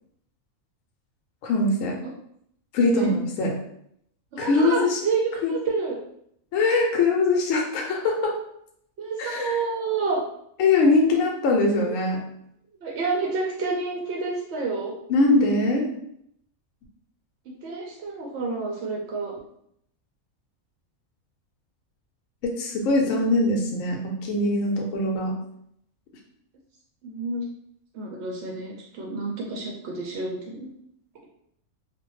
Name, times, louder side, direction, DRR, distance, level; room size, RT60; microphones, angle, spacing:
voice 1, 1.4-1.9 2.7-3.5 4.4-5.0 5.4-5.5 6.5-8.3 9.2-9.6 10.6-12.2 15.1-15.9 22.4-25.3, left 2 dB, 70° left, 0 dB, 0.9 m, -22 dB
voice 2, 4.3-6.0 9.0-10.2 11.7-11.9 12.8-14.9 17.6-19.3 27.0-27.5 27.9-30.7, right 4 dB, 65° right, -1 dB, 0.7 m, -29 dB
2.4 x 2.1 x 3.0 m, 0.72 s
omnidirectional pair, 1.5 m